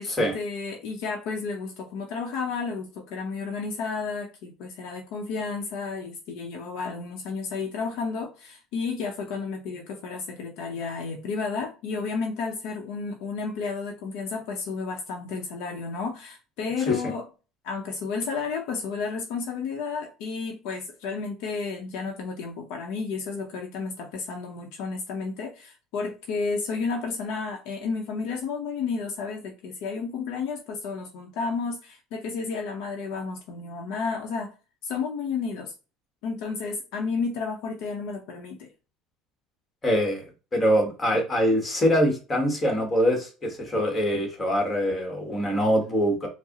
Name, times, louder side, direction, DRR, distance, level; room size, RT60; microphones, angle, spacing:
voice 1, 0.0-17.2 17.6-34.5 34.8-35.7 36.2-38.7, left 4 dB, 65° left, 0.7 m, -32 dB
voice 2, 39.8-40.2 40.5-46.3, equal, 15° left, 1.1 m, -23 dB
4.7 x 2.0 x 2.8 m
cardioid pair, 155°, 0 cm